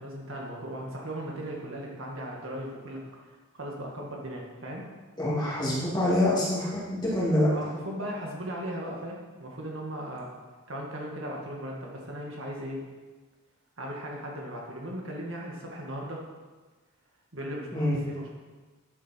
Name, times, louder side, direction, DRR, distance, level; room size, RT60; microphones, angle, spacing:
voice 1, 0.0-4.9 7.5-10.3 10.7-12.8 13.8-16.2 17.3-18.3, equal, 60° right, -2 dB, 1.8 m, -37 dB
voice 2, 5.2-7.5 17.7-18.0, left 1 dB, 20° left, -7 dB, 2.6 m, -25 dB
10.5 x 7.5 x 4.4 m, 1.3 s
head